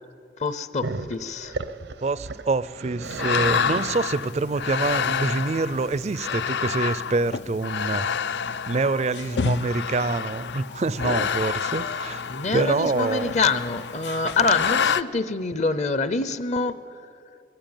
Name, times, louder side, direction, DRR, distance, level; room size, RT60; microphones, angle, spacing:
voice 1, 0.4-1.5 12.3-16.8, left 3 dB, 40° left, 13 dB, 0.7 m, -25 dB
Growling, 0.8-6.7, right 3 dB, 90° right, 0.7 m, -36 dB
voice 2, 2.0-8.1 8.7-12.3 12.5-13.3, right 3 dB, 40° right, 17 dB, 0.4 m, -26 dB
sound 1, 3.1-15.0, left 6 dB, 80° left, 0.4 m, -28 dB
20.0 x 14.5 x 9.0 m, 2.6 s
head